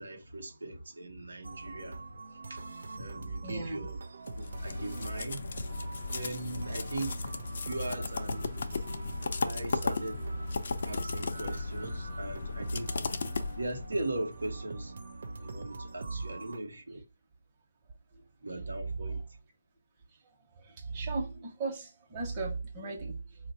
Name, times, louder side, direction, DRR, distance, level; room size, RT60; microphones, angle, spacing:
voice 1, 0.0-2.0 3.0-4.0 4.4-5.5 6.1-7.1 7.5-8.5 9.4-10.2 10.8-13.0 13.6-14.9 15.4-17.0 18.4-19.2, right 2 dB, 80° right, 1.0 m, -39 dB
sound 1, 1.4-16.6, right 3 dB, 65° right, 0.6 m, -44 dB
voice 2, 3.4-3.9 8.4-8.7 16.4-16.5 19.0-19.2 20.5-23.4, right 3 dB, 30° right, 1.1 m, -37 dB
sound 2, 4.3-14.0, left 3 dB, 60° left, 0.5 m, -35 dB
4.3 x 2.5 x 4.0 m
figure-of-eight pair, 150°, 0 cm